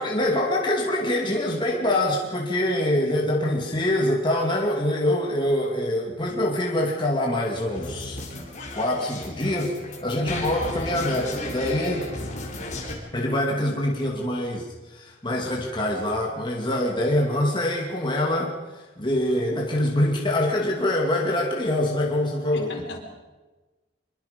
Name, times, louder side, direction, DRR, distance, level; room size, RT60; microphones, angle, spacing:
voice 1, 0.0-8.2 8.7-9.8 10.0-12.1 13.1-18.5 19.0-22.7, left 1 dB, 25° left, -1 dB, 2.5 m, -24 dB
sound 1, 7.7-13.0, left 1 dB, 40° left, 3.9 m, -34 dB
voice 2, 22.5-23.0, left 1 dB, 75° left, 2 dB, 4.2 m, -36 dB
25.0 x 22.5 x 5.3 m, 1.2 s
head